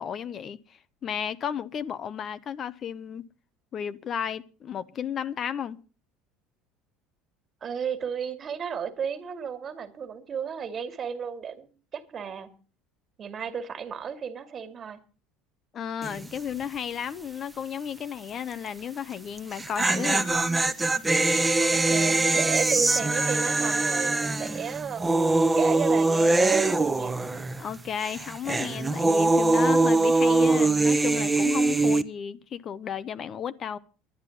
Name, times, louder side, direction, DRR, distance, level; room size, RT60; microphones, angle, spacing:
voice 1, 0.0-3.2 3.7-5.8 15.7-20.3 27.6-33.8, left 8 dB, 45° left, 0.8 m, -33 dB
voice 2, 7.6-12.5 13.2-15.0 21.6-25.1 25.6-27.2, right 7 dB, 40° right, 2.2 m, -33 dB
sound 1, 16.0-16.4 16.6-16.7 19.4-27.7 28.0-32.0, right 2 dB, 15° right, 1.0 m, -23 dB
11.0 x 9.8 x 7.1 m
hypercardioid pair, 85°, 0 cm